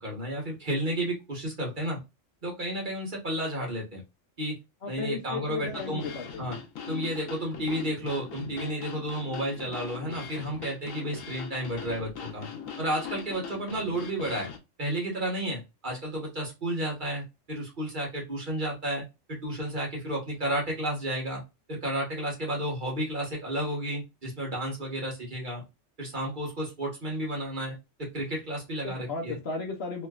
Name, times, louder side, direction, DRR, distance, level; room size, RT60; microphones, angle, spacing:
voice 1, 0.0-2.0 2.4-4.0 4.4-4.6 4.9-6.0 6.4-6.6 6.9-12.5 12.8-14.5 14.8-21.4 21.7-25.6 26.0-29.4, right 1 dB, 40° right, 1.4 m, -32 dB
voice 2, 4.8-6.4 28.8-30.1, left 3 dB, 55° left, 1.0 m, -35 dB
sound 1, 5.6-14.6, left 6 dB, 85° left, 1.1 m, -40 dB
3.1 x 3.0 x 2.3 m
omnidirectional pair, 1.3 m